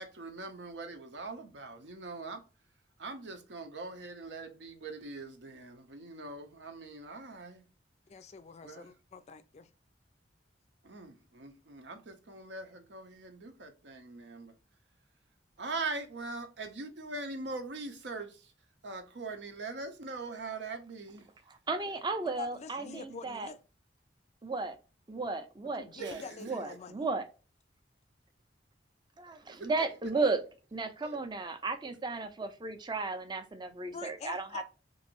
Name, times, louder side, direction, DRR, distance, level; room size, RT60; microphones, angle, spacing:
voice 1, 0.0-2.4 3.0-7.7 8.6-8.9 10.8-14.5 15.6-18.5 18.8-21.3 22.8-23.2 26.0-26.5 29.5-29.7 31.0-31.2, right 3 dB, 80° right, 0.7 m, -42 dB
voice 2, 8.1-9.7 22.4-23.6 25.8-27.0 33.9-34.6, left 5 dB, 40° left, 0.4 m, -45 dB
voice 3, 21.7-23.5 24.4-24.8 25.1-27.3 29.2-30.4 30.7-34.6, right 3 dB, 25° right, 0.5 m, -34 dB
3.0 x 2.6 x 2.8 m
head